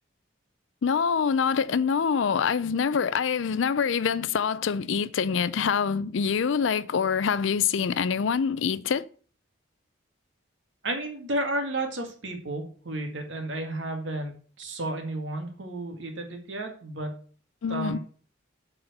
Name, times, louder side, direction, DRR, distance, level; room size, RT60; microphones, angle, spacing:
voice 1, 0.8-9.1 17.6-18.0, left 6 dB, 70° left, 0.4 m, -25 dB
voice 2, 10.8-17.2 17.7-18.0, right 1 dB, 65° right, 1.8 m, -32 dB
7.7 x 4.4 x 6.6 m
head